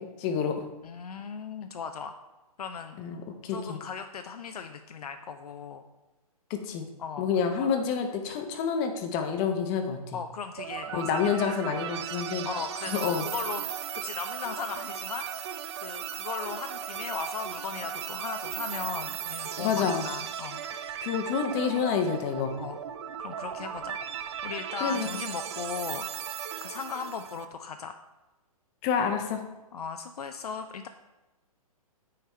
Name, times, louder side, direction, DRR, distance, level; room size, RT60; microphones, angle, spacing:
voice 1, 0.0-0.7 3.0-3.8 6.5-6.8 7.2-10.2 10.9-12.5 12.9-13.3 19.6-20.1 21.0-22.6 24.8-25.1 28.8-29.4, left 6 dB, 25° left, 6 dB, 0.8 m, -28 dB
voice 2, 0.8-2.1 2.6-3.0 3.5-5.8 7.0-7.3 7.6-7.8 10.1-11.5 12.5-20.6 22.5-22.8 23.2-26.2 26.6-28.0 29.7-30.9, left 6 dB, 80° left, 7 dB, 0.5 m, -37 dB
sound 1, 10.6-27.5, right 9 dB, 45° right, 0.5 m, -37 dB
9.3 x 3.4 x 4.3 m, 1.1 s
hypercardioid pair, 140°, 19 cm